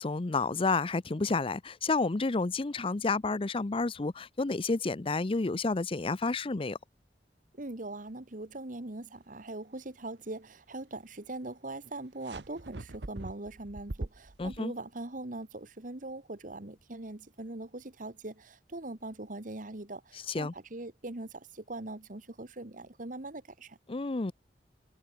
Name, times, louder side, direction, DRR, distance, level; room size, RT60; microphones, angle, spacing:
voice 1, 0.0-6.8 14.4-14.7 20.1-20.5 23.9-24.3, left 3 dB, 30° left, 0.6 m, -30 dB
voice 2, 7.6-23.8, right 2 dB, 50° right, 1.6 m, -41 dB
sound 1, 12.2-14.6, right 2 dB, 80° right, 1.1 m, -42 dB
head